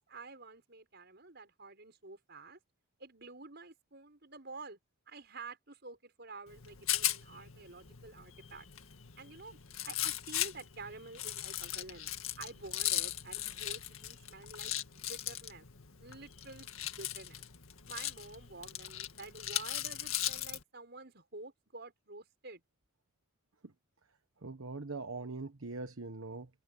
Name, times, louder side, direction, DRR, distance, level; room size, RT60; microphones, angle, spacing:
voice 1, 0.0-2.6 3.0-4.8 5.1-8.7 9.2-9.6 9.8-12.1 12.4-15.7 16.0-17.4 17.9-22.6, right 3 dB, 50° right, 6.6 m, -50 dB
Rattle, 6.5-20.6, left 13 dB, 85° left, 2.0 m, -38 dB
voice 2, 24.4-26.5, right 3 dB, 80° right, 1.2 m, -41 dB
head